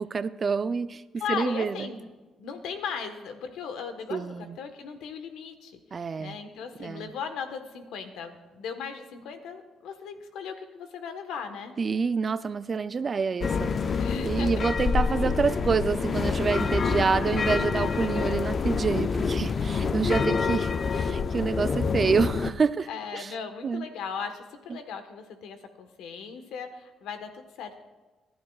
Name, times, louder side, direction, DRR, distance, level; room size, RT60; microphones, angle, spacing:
voice 1, 0.0-1.0 1.3-1.9 4.1-4.5 5.9-6.4 6.8-7.1 11.8-13.7 14.2-23.3 23.6-23.9 24.7-24.8, right 5 dB, 40° right, 13 dB, 0.5 m, -27 dB
voice 2, 1.2-2.1 2.4-5.8 6.2-11.7 14.0-14.7 22.9-27.7, left 6 dB, 90° left, 7 dB, 1.3 m, -37 dB
sound 1, 13.4-22.5, left 5 dB, 45° left, 0.5 m, -27 dB
25.5 x 11.0 x 2.4 m, 1.2 s
cardioid pair, 90°, 0 cm